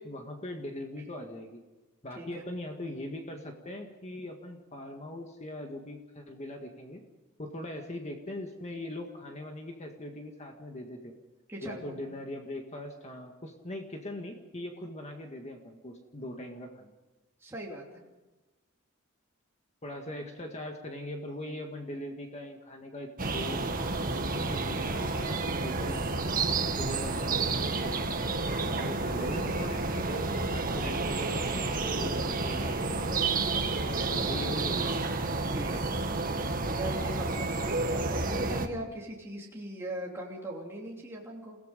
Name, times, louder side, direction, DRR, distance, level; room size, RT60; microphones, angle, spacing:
voice 1, 0.0-1.6 2.0-7.0 7.4-11.1 11.6-16.9 19.8-23.8 24.1-28.1 28.7-32.9 34.1-35.0, left 1 dB, 35° left, 3 dB, 1.8 m, -41 dB
voice 2, 11.5-12.0 17.4-18.0 30.7-31.3 32.6-34.7 35.5-35.9 36.7-41.6, right 1 dB, 10° right, -3 dB, 3.0 m, -41 dB
sound 1, 23.2-38.7, right 3 dB, 45° right, 1.7 m, -30 dB
29.5 x 17.5 x 5.2 m, 1.1 s
head